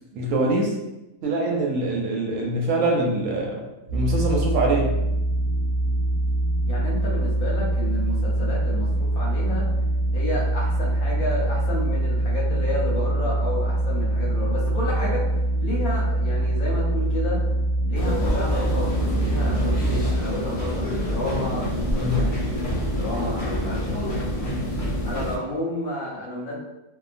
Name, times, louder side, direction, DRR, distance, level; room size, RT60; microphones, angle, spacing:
voice 1, 0.1-0.7 1.2-3.6 3.9-5.0 22.0-22.2, right 2 dB, 70° right, -1 dB, 0.9 m, -24 dB
sound 1, 3.9-20.2, right 1 dB, 45° right, 0.5 m, -24 dB
voice 2, 6.7-9.7 10.1-15.2 15.6-17.4 17.9-22.3 22.8-24.4 25.0-26.5, left 1 dB, 75° left, -4 dB, 1.3 m, -31 dB
sound 2, 18.0-25.4, equal, 50° left, 0.6 m, -27 dB
2.9 x 2.2 x 2.4 m, 0.97 s
omnidirectional pair, 1.5 m